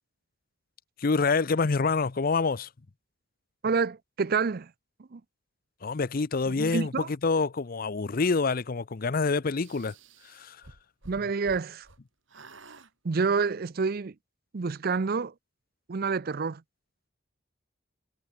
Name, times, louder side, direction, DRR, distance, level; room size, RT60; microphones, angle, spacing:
voice 1, 1.0-2.7 5.8-9.9 10.2-10.6, left 4 dB, 45° left, 0.6 m, -27 dB
voice 2, 3.6-4.7 5.1-5.2 6.5-7.1 11.1-11.9 13.0-14.2 14.5-15.3 15.9-16.6, right 5 dB, 50° right, 0.5 m, -28 dB
sound 1, 9.5-12.0 12.3-12.9, right 3 dB, 70° right, 3.4 m, -51 dB
head